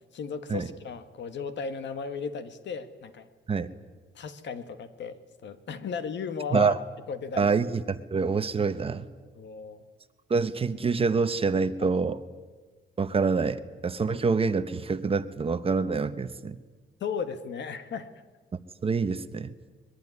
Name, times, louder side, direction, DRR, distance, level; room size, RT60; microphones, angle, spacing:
voice 1, 0.1-3.3 4.1-6.7 7.1-7.5 9.3-9.8 17.0-18.1, left 5 dB, 65° left, 10 dB, 1.6 m, -35 dB
voice 2, 7.4-9.1 10.3-12.2 13.0-16.6 18.8-19.5, right 4 dB, 30° right, 11 dB, 0.9 m, -26 dB
23.5 x 21.5 x 9.7 m, 1.3 s
wide cardioid pair, 180°, 20 cm